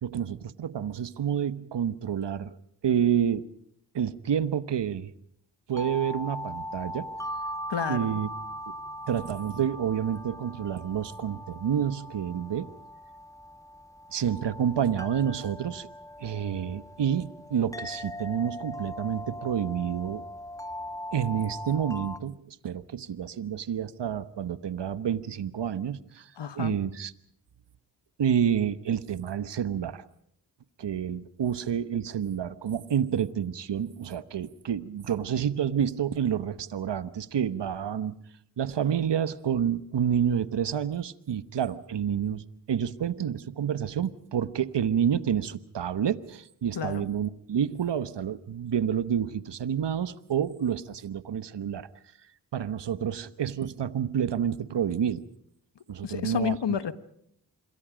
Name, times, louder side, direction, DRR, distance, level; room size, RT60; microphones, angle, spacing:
voice 1, 0.0-2.6 2.8-3.5 3.9-5.1 5.7-7.1 7.9-8.3 9.1-12.7 14.1-15.9 16.2-20.2 21.1-27.1 28.2-30.1 30.8-38.1 38.6-51.9 52.5-55.2 55.9-56.8, right 8 dB, 75° right, 14 dB, 1.1 m, -29 dB
sound 1, 5.7-22.2, equal, 10° left, 1.5 m, -40 dB
voice 2, 7.7-8.1 26.4-26.8 46.7-47.0 56.0-56.9, left 7 dB, 75° left, 12 dB, 1.5 m, -30 dB
27.0 x 23.0 x 5.1 m, 0.71 s
cardioid pair, 45°, 42 cm